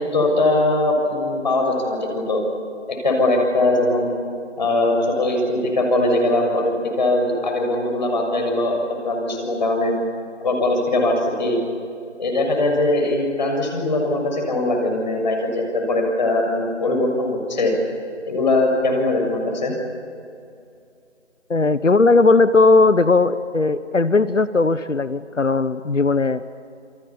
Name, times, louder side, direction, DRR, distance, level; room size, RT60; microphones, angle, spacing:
voice 1, 0.1-2.4 2.9-4.1 4.6-8.8 9.0-10.0 10.4-11.6 12.2-17.7 18.3-19.7, left 2 dB, 35° left, 2 dB, 6.6 m, -21 dB
voice 2, 21.5-26.4, left 3 dB, 80° left, 14 dB, 1.2 m, -17 dB
28.5 x 26.5 x 7.2 m, 2.4 s
figure-of-eight pair, 155°, 36 cm